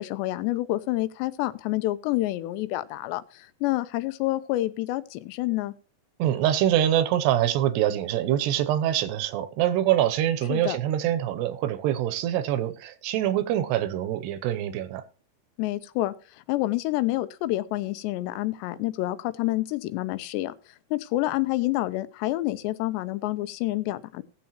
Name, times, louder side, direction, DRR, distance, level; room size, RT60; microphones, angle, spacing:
voice 1, 0.0-5.7 10.5-10.8 15.6-16.1 16.5-20.5 20.9-24.2, left 17 dB, 85° left, 2.9 m, -28 dB
voice 2, 6.2-15.0, right 12 dB, 80° right, 2.8 m, -25 dB
18.5 x 7.1 x 3.0 m
omnidirectional pair, 4.9 m